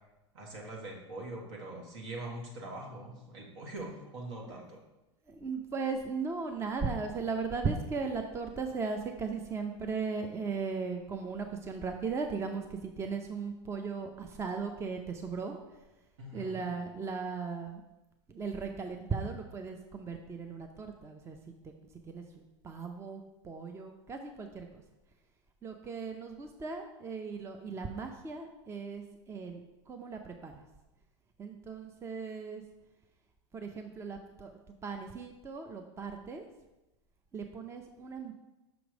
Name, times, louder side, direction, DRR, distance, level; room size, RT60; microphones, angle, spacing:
voice 1, 0.3-4.8 16.2-16.6, right 1 dB, 70° right, -1 dB, 1.7 m, -43 dB
voice 2, 5.3-15.6 16.3-17.8 18.3-21.4 21.6-21.7 22.1-24.8 25.6-29.6 29.9-30.6 31.4-32.6 33.5-36.4 37.3-38.3, right 5 dB, 15° right, 5 dB, 0.5 m, -37 dB
6.0 x 3.1 x 5.1 m, 1.0 s
hypercardioid pair, 110°, 15 cm